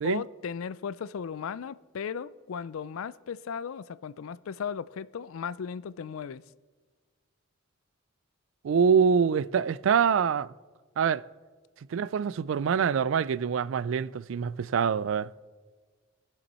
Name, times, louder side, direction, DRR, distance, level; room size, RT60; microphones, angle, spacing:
voice 1, 0.0-6.4, left 6 dB, 85° left, 0.4 m, -36 dB
voice 2, 8.6-10.5 11.0-11.2 11.9-15.3, right 6 dB, 65° right, 0.3 m, -25 dB
20.0 x 7.0 x 4.2 m
head